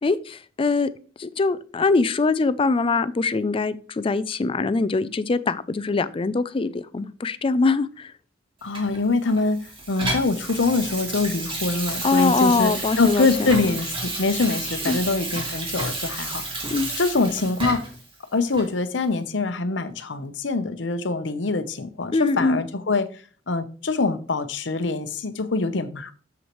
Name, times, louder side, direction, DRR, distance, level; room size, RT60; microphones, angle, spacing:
voice 1, 0.0-0.9 1.2-8.1 12.0-13.8 14.9-15.0 16.7-16.9 22.1-22.6, left 3 dB, 30° left, 15 dB, 0.4 m, -23 dB
voice 2, 8.6-16.6 17.0-17.8 18.3-23.1 23.5-26.1, left 3 dB, 70° left, 10 dB, 0.8 m, -24 dB
Water tap faucet / Sink (filling or washing), 8.7-18.0 18.5-18.7, right 2 dB, 30° right, 2.1 m, -31 dB
8.1 x 7.2 x 3.1 m, 0.40 s
head